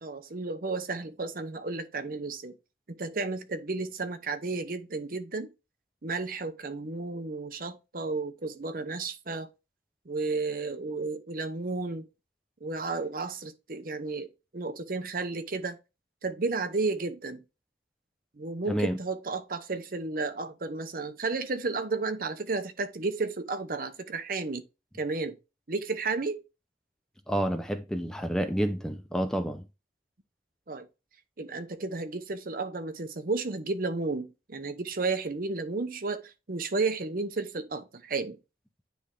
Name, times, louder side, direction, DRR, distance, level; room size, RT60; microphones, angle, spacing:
voice 1, 0.0-2.5 2.9-5.5 6.0-9.5 10.1-12.0 12.6-15.8 16.2-17.4 18.4-24.6 25.0-25.4 25.7-26.4 30.7-30.9 31.4-38.4, right 3 dB, 50° right, 0.8 m, -32 dB
voice 2, 18.7-19.0 27.3-29.6, equal, 5° left, 0.5 m, -29 dB
9.9 x 3.4 x 3.7 m
head